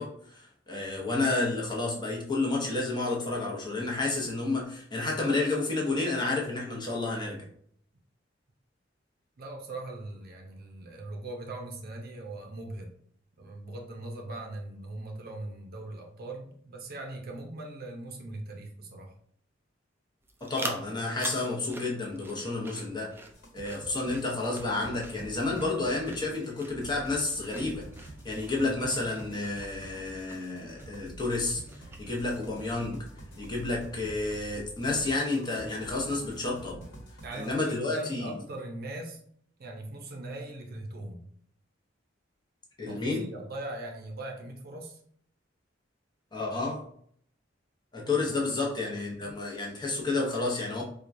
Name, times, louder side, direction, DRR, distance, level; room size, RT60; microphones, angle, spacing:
voice 1, 0.0-7.5 20.4-23.1 23.5-31.6 32.0-33.0 33.4-36.8 37.3-38.3 42.8-43.3 46.3-46.8 47.9-50.8, left 2 dB, 25° left, -2 dB, 0.8 m, -30 dB
voice 2, 9.4-12.9 13.4-19.1 28.6-28.8 37.2-39.2 39.6-41.3 42.9-45.0 48.2-48.3, right 2 dB, 55° right, 1 dB, 0.6 m, -40 dB
sound 1, 20.2-33.0, right 2 dB, 10° right, 0.3 m, -46 dB
sound 2, 23.3-37.5, right 1 dB, 60° left, 1.3 m, -47 dB
4.5 x 2.3 x 2.5 m, 0.63 s
head